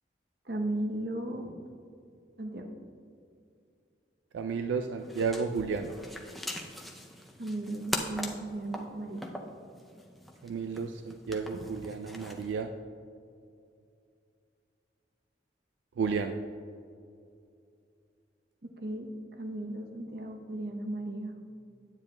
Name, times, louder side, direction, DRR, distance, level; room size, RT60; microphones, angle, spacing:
voice 1, 0.5-1.6 2.4-2.7 7.4-9.3 11.5-11.7 18.8-19.1 19.4-21.5, right 1 dB, 55° right, 3 dB, 0.8 m, -36 dB
voice 2, 4.3-5.9 10.4-12.7 16.0-16.4, right 5 dB, 80° right, 6 dB, 0.3 m, -32 dB
sound 1, 5.0-12.5, equal, ahead, 0.4 m, -41 dB
9.8 x 8.8 x 2.2 m, 2.5 s
head